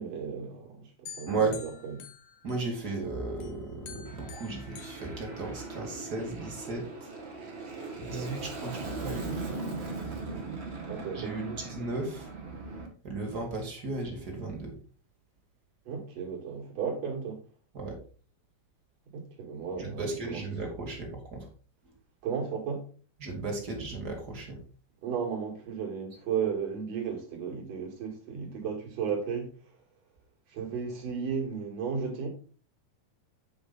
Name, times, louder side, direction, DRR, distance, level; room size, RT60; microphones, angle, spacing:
voice 1, 0.0-1.9 8.1-8.3 10.9-11.6 15.9-17.4 19.1-20.4 22.2-22.9 25.0-29.5 30.5-32.3, right 6 dB, 55° right, 2.8 m, -34 dB
sound 1, 1.1-3.0 3.4-5.9, left 8 dB, 60° left, 1.7 m, -49 dB
voice 2, 1.3-1.6 2.4-7.1 8.0-9.4 11.1-12.3 13.0-14.8 17.7-18.0 19.8-21.5 23.2-24.6, right 3 dB, 35° right, 1.9 m, -35 dB
Aircraft, 4.0-12.9, right 3 dB, 75° right, 0.5 m, -39 dB
8.9 x 5.1 x 3.9 m
omnidirectional pair, 3.8 m